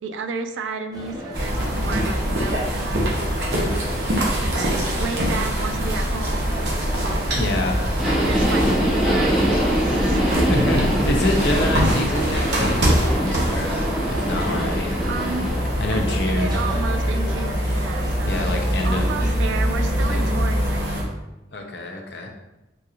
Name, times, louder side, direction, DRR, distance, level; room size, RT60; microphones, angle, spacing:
voice 1, 0.0-3.6 4.4-6.8 8.1-10.5 15.0-15.5 15.9-18.5 18.8-21.1, right 4 dB, 85° right, 8 dB, 0.3 m, -33 dB
sound 1, 0.9-19.3, equal, 20° right, 0.6 m, -34 dB
sound 2, 1.3-21.0, equal, 60° right, 0.8 m, -23 dB
voice 2, 7.4-7.8 10.3-13.8 14.1-15.0 15.6-16.6 18.2-19.1 20.1-20.3 21.5-22.3, left 2 dB, 65° left, 2 dB, 0.5 m, -27 dB
Subway metro underground, 8.0-15.6, equal, ahead, 0.9 m, -24 dB
3.7 x 2.5 x 2.9 m, 0.96 s
head